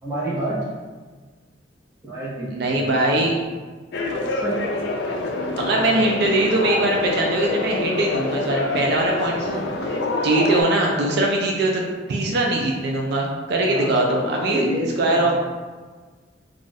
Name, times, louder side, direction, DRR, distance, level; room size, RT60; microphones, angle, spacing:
voice 1, 0.0-0.7 2.0-3.0 4.3-4.7 5.3-5.8 9.4-9.6 13.7-15.3, right 1 dB, 15° right, -10 dB, 0.8 m, -29 dB
voice 2, 2.5-3.3 5.6-9.7 10.2-11.8 12.1-14.7 15.0-15.3, right 2 dB, 60° right, 0 dB, 0.4 m, -21 dB
sound 1, 3.9-10.6, left 2 dB, 60° left, 0.4 m, -26 dB
2.4 x 2.3 x 3.9 m, 1.4 s
head